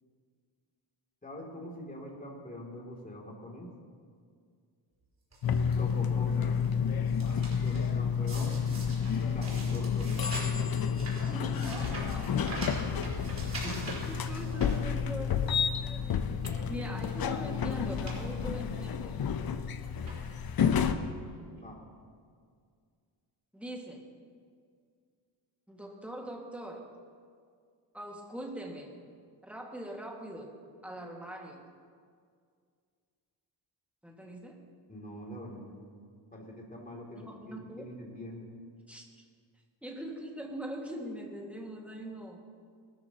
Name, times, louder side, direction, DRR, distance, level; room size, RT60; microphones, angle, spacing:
voice 1, 1.2-3.7 5.8-6.5 7.6-8.6 9.3-10.1 13.6-14.0 21.5-21.8 34.9-35.9 36.3-38.5, equal, 20° left, -2 dB, 2.8 m, -43 dB
sound 1, 5.3-5.7 6.3-6.7 6.9-7.9 8.3-15.4 15.8-15.9 16.3-16.7 17.5-17.6 17.9-18.2 18.5-18.6 19.5-19.7 20.0-20.5 21.3-21.4 21.6-21.7, right 2 dB, 35° right, 4.5 m, -43 dB
sound 2, 5.4-20.9, left 7 dB, 50° left, 0.8 m, -30 dB
voice 2, 11.2-12.3 12.8-13.1 14.0-16.4 16.7-19.2 23.5-24.0 25.7-26.9 27.9-28.9 29.4-30.6 30.8-31.6 34.0-34.6 37.1-37.8 38.9-39.2 39.8-42.4, right 1 dB, 5° right, -1 dB, 1.9 m, -42 dB
21.0 x 13.5 x 3.0 m, 2.1 s
cardioid pair, 110°, 46 cm